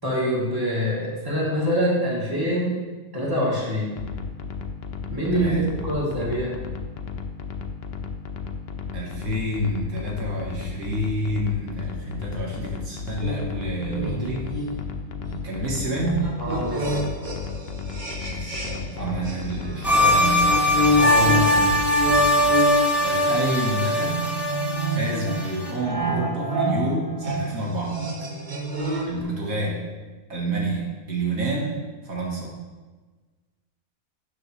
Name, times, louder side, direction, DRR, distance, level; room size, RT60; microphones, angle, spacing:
voice 1, 0.0-2.8 3.1-3.9 5.1-5.5 5.8-6.6 16.4-16.9 18.9-19.1 21.0-21.7, equal, 15° right, -6 dB, 3.0 m, -25 dB
sound 1, 4.0-22.6, left 5 dB, 55° left, 0.9 m, -34 dB
voice 2, 5.3-5.7 8.9-14.5 15.4-16.4 18.2-20.7 23.0-24.2 24.8-28.3 29.1-29.9 30.3-32.6, right 1 dB, 75° right, -2 dB, 2.0 m, -28 dB
sound 2, 13.2-19.0 19.2-29.2, equal, 35° right, 1.3 m, -28 dB
sound 3, 19.8-25.7, left 1 dB, 15° left, 2.9 m, -21 dB
13.0 x 8.5 x 3.2 m, 1.3 s
omnidirectional pair, 1.5 m